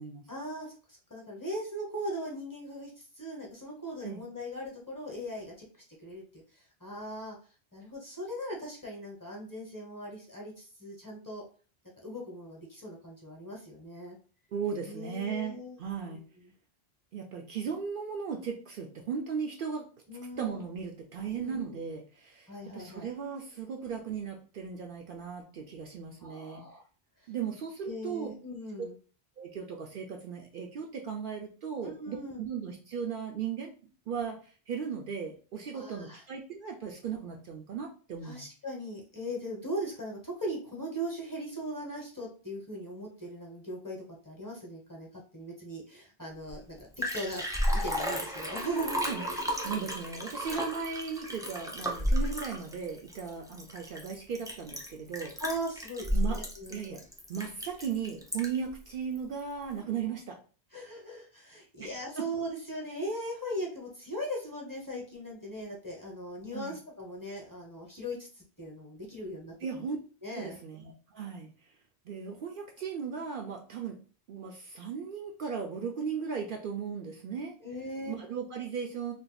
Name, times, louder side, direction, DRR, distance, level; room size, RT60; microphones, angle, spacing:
voice 1, 0.3-5.5 6.0-7.4 7.7-11.4 12.0-14.2 14.8-16.5 20.1-20.6 21.3-21.6 22.5-23.1 26.2-26.8 27.8-29.0 31.8-32.4 35.7-36.2 38.2-49.0 49.3-49.4 55.4-56.9 60.7-69.9 70.2-70.6 77.6-78.2, equal, 20° left, -2 dB, 0.9 m, -39 dB
voice 2, 14.5-16.2 17.1-19.9 20.4-26.6 27.3-28.3 29.4-33.7 34.1-38.5 49.0-49.3 49.6-55.3 56.1-56.4 56.7-57.0 57.3-60.4 61.8-62.3 66.5-66.7 69.6-70.0 70.3-71.5 72.1-74.0 74.3-77.5 78.1-79.1, right 6 dB, 60° right, 1 dB, 0.6 m, -37 dB
Liquid, 46.5-46.6 46.8-58.7 59.1-59.2, equal, 5° right, 0.3 m, -33 dB
2.6 x 2.5 x 3.8 m, 0.38 s
omnidirectional pair, 1.1 m